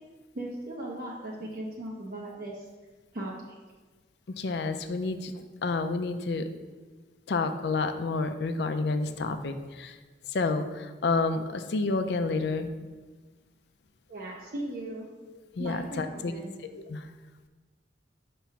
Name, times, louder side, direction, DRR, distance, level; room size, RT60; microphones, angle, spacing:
voice 1, 0.3-2.7 3.1-3.5 14.1-15.1 15.6-16.6, right 1 dB, 50° right, -3 dB, 0.7 m, -38 dB
voice 2, 4.3-5.3 5.6-6.5 7.3-9.9 10.3-12.7 15.3-16.3 16.7-17.0, left 3 dB, 70° left, 8 dB, 0.4 m, -29 dB
5.9 x 3.0 x 5.6 m, 1.3 s
head